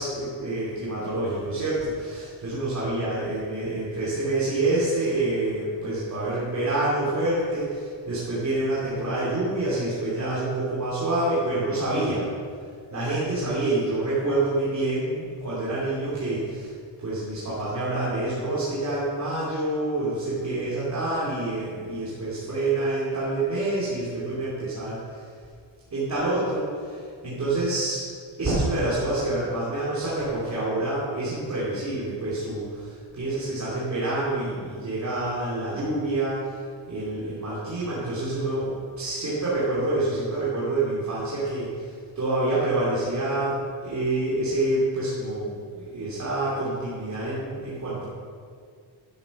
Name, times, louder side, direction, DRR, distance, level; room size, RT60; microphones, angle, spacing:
voice 1, 0.0-12.3 12.9-16.7 17.0-25.3 25.9-28.0 28.4-36.6 36.9-48.1, right 2 dB, 35° right, -9 dB, 3.2 m, -27 dB
12.0 x 8.4 x 5.6 m, 2.1 s
wide cardioid pair, 145°, 48 cm